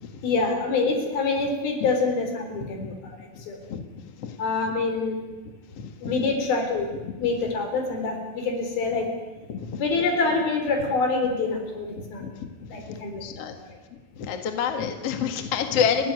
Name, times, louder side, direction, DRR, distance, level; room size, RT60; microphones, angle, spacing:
voice 1, 0.2-3.2 3.5-3.6 4.4-5.2 6.0-9.2 9.8-12.3 12.7-13.2 13.5-13.8 16.0-16.1, left 3 dB, 75° left, 4 dB, 5.8 m, -26 dB
voice 2, 5.8-6.1 7.0-7.1 9.5-9.8 12.2-13.5 14.2-16.1, left 7 dB, 50° left, 6 dB, 2.4 m, -29 dB
29.5 x 13.5 x 9.6 m, 1.2 s
omnidirectional pair, 4.3 m